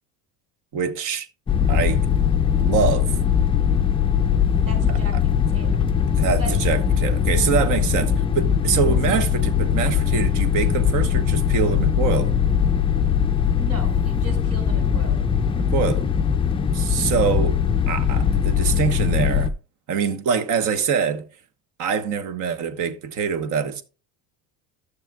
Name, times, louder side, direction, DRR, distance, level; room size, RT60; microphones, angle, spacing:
voice 1, 0.7-1.3 1.7-2.1 2.5-3.2 4.9-5.0 6.2-12.3 15.6-16.1 16.7-19.5 19.9-21.3 21.8-23.8, right 6 dB, 55° right, 1.2 m, -24 dB
sound 1, 1.5-19.5, left 8 dB, 15° left, 0.4 m, -21 dB
voice 2, 4.7-5.1 5.5-5.8 6.4-6.6 13.6-15.4, right 1 dB, 90° right, 5.3 m, -36 dB
14.0 x 6.5 x 2.3 m
cardioid pair, 155°, 36 cm